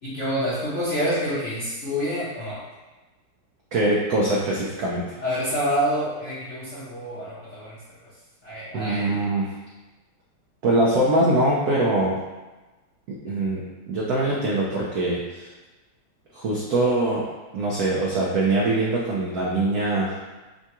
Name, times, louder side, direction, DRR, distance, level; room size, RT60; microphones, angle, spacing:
voice 1, 0.0-2.6 5.2-7.8 8.4-9.2, equal, 45° left, -10 dB, 0.9 m, -27 dB
voice 2, 3.7-5.2 8.7-9.5 10.6-12.2 13.1-15.5 16.3-17.2 17.5-20.2, right 2 dB, 75° right, -4 dB, 0.8 m, -23 dB
6.8 x 2.3 x 2.9 m, 1.2 s
omnidirectional pair, 2.4 m